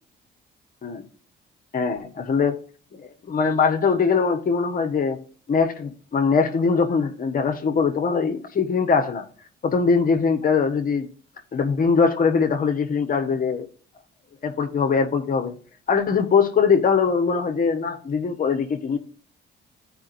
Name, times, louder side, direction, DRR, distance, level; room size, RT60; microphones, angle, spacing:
voice 1, 1.7-2.6 3.0-5.2 5.5-9.2 9.6-11.1 11.5-13.7 14.4-15.5 15.9-19.0, left 5 dB, 45° left, 1.3 m, -22 dB
14.5 x 5.2 x 2.6 m
cardioid pair, 90°, 20 cm